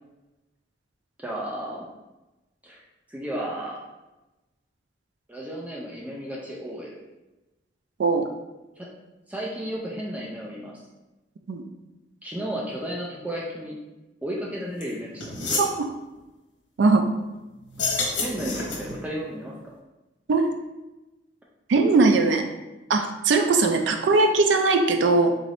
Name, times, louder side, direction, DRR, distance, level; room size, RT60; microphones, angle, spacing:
voice 1, 1.2-1.9 2.6-2.8 3.1-3.8 5.3-7.0 8.8-8.9 9.3-10.8 12.2-13.8 14.2-15.2 17.8-19.5, equal, 10° right, -3 dB, 0.4 m, -33 dB
sound 1, 14.8-14.9 15.2-15.7 17.7-19.0, left 3 dB, 85° left, 1.0 m, -28 dB
voice 2, 21.7-22.4 22.9-25.3, right 3 dB, 70° right, 5 dB, 0.4 m, -20 dB
3.7 x 2.5 x 3.3 m, 1.0 s
head